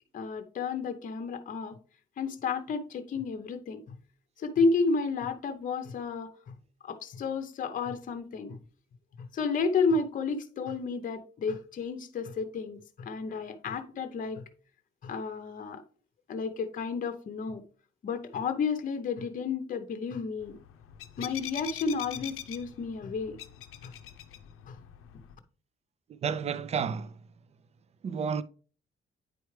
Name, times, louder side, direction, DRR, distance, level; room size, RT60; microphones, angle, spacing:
voice 1, 0.1-1.8 2.2-4.0 4.4-6.5 6.8-8.6 9.2-14.4 15.0-15.8 16.3-17.6 18.0-20.6 21.2-23.4 23.8-23.9 24.7-24.8, left 4 dB, 40° left, 0.7 m, -31 dB
sound 1, 20.4-25.3, left 11 dB, 90° left, 0.6 m, -44 dB
voice 2, 26.2-27.2 28.0-28.4, right 6 dB, 30° right, 0.4 m, -31 dB
9.2 x 4.6 x 3.2 m
cardioid pair, 165°, 21 cm